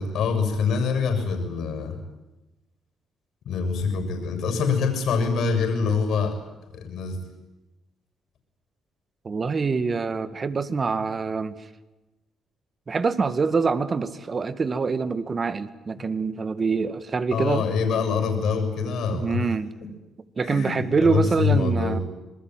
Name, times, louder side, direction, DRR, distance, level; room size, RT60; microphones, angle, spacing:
voice 1, 0.0-2.0 3.4-6.4 6.7-7.2 17.3-19.5 20.4-22.0, left 5 dB, 75° left, 7 dB, 6.9 m, -25 dB
voice 2, 9.2-11.5 12.9-17.7 19.1-19.7 20.4-22.0, right 4 dB, 35° right, 13 dB, 2.0 m, -25 dB
27.0 x 20.5 x 9.3 m, 1.1 s
cardioid pair, 90°, 0 cm